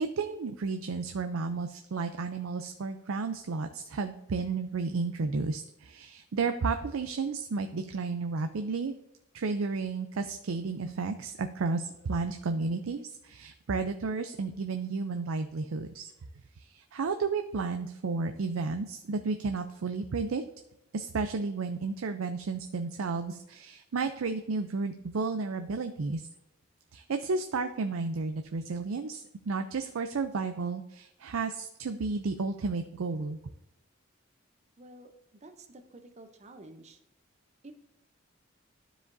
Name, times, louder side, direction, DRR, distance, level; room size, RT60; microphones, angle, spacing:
voice 1, 0.0-8.9 9.3-16.1 16.6-20.4 20.9-26.3 26.9-33.4, right 4 dB, 90° right, 7 dB, 0.5 m, -32 dB
voice 2, 34.8-35.1 35.4-37.0 37.6-37.7, right 2 dB, 35° right, 6 dB, 0.7 m, -50 dB
12.0 x 5.0 x 2.6 m, 0.84 s
head